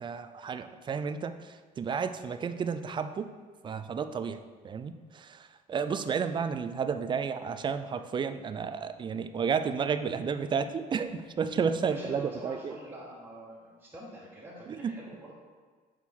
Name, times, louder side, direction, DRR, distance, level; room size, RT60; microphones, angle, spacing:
voice 1, 0.0-3.3 3.6-12.7 14.7-15.0, right 6 dB, 30° right, 10 dB, 0.3 m, -32 dB
voice 2, 11.8-15.3, right 1 dB, 10° right, -9 dB, 1.3 m, -45 dB
6.1 x 4.4 x 3.6 m, 1.5 s
cardioid pair, 110°, 17 cm